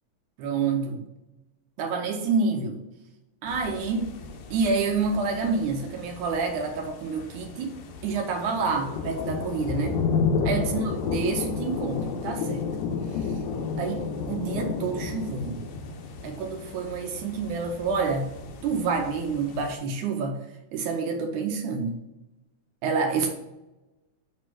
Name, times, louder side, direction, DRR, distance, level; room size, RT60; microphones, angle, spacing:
voice 1, 0.4-1.0 1.8-2.8 3.4-4.1 4.5-7.7 8.0-10.0 10.4-12.7 13.1-13.4 13.8-15.7 16.2-18.3 18.6-20.4 20.7-22.0 22.8-23.3, right 4 dB, 80° right, 3 dB, 2.2 m, -28 dB
sound 1, 3.5-19.7, left 5 dB, 85° left, 2.3 m, -32 dB
7.1 x 3.2 x 6.0 m, 0.97 s
omnidirectional pair, 3.5 m